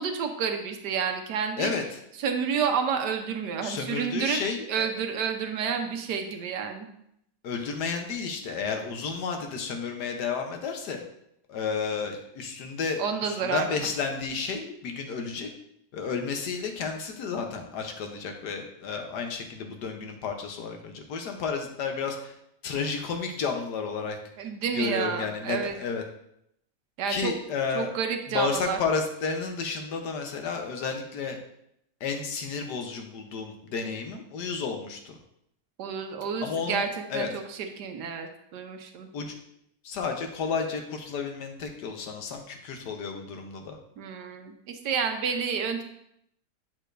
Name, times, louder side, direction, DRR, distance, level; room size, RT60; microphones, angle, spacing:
voice 1, 0.0-1.7 2.2-4.4 4.7-6.9 13.0-13.8 24.4-25.8 27.0-27.3 27.7-28.8 35.8-39.1 44.0-45.8, right 6 dB, 85° right, 5 dB, 1.4 m, -30 dB
voice 2, 3.6-4.8 7.4-11.0 11.5-15.5 15.9-22.4 22.6-24.2 24.7-26.0 27.1-27.9 28.3-31.4 32.0-35.2 36.4-36.8 37.1-37.3 39.1-39.4 39.8-43.8, left 5 dB, 85° left, 4 dB, 1.5 m, -32 dB
7.9 x 6.5 x 2.6 m, 0.75 s
omnidirectional pair, 1.7 m